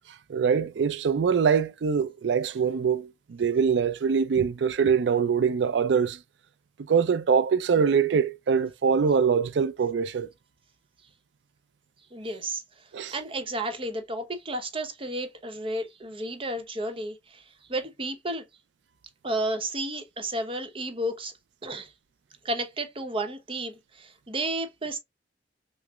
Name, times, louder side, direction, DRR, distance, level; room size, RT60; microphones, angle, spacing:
voice 1, 0.3-6.2 6.9-10.3 12.9-13.1, right 6 dB, 75° right, 0.4 m, -23 dB
voice 2, 12.1-12.6 13.1-17.4 17.7-18.4 19.2-21.3 21.6-21.9 22.4-25.0, right 1 dB, 30° right, 0.8 m, -32 dB
6.0 x 2.0 x 2.3 m
head